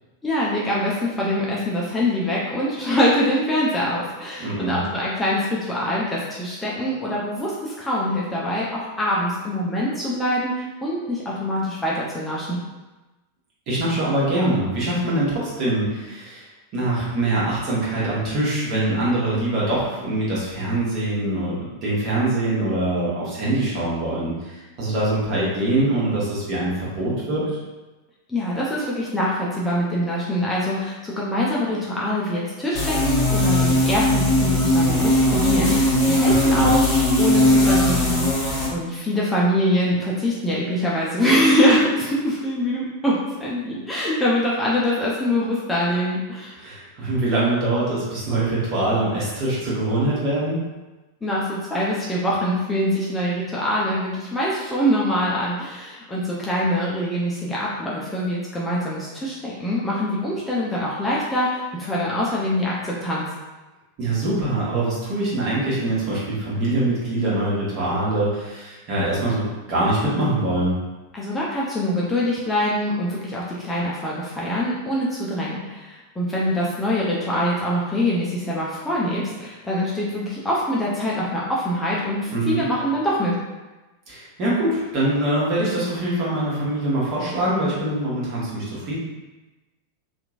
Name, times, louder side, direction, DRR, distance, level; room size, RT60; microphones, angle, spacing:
voice 1, 0.2-12.6 28.3-36.9 37.2-46.6 51.2-63.3 71.1-83.4, equal, 10° left, -6 dB, 0.5 m, -24 dB
voice 2, 4.4-4.7 13.7-16.5 16.7-21.6 21.8-27.4 36.2-36.7 46.6-50.6 64.0-70.7 82.3-82.6 84.1-89.0, right 1 dB, 40° right, -7 dB, 1.1 m, -23 dB
sound 1, 32.7-38.7, left 1 dB, 35° left, 1.1 m, -19 dB
2.9 x 2.5 x 2.4 m, 1.1 s
figure-of-eight pair, 90°, 0 cm